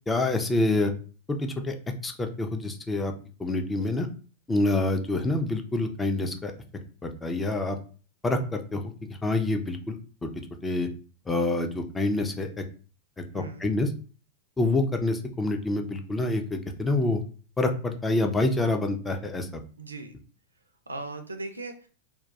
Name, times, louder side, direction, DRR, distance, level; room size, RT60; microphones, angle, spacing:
voice 1, 0.1-0.9 1.3-1.7 2.0-3.1 3.4-4.1 4.5-6.5 7.0-7.8 8.2-8.8 9.2-10.0 10.2-10.3 10.6-10.9 11.3-12.6 13.2-13.9 14.6-17.2 17.6-19.6, left 2 dB, 10° left, 5 dB, 0.4 m, -27 dB
voice 2, 13.3-13.7 19.8-20.1 20.9-21.9, right 2 dB, 75° right, 7 dB, 0.4 m, -38 dB
2.2 x 2.2 x 2.6 m, 0.39 s
figure-of-eight pair, 90°, 0 cm